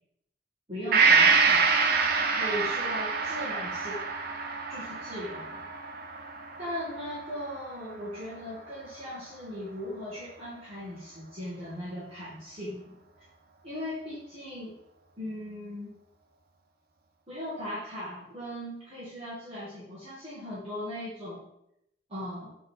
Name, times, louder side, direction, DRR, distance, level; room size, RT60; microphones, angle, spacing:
voice 1, 0.7-1.7 2.3-4.0 4.7-5.6 6.6-13.0 13.6-14.8 15.2-15.9 17.3-21.5 22.1-22.6, left 1 dB, 35° right, -9 dB, 1.6 m, -38 dB
Gong, 0.9-8.6 8.9-9.0, right 5 dB, 55° right, 0.7 m, -26 dB
6.6 x 3.5 x 4.3 m, 0.79 s
head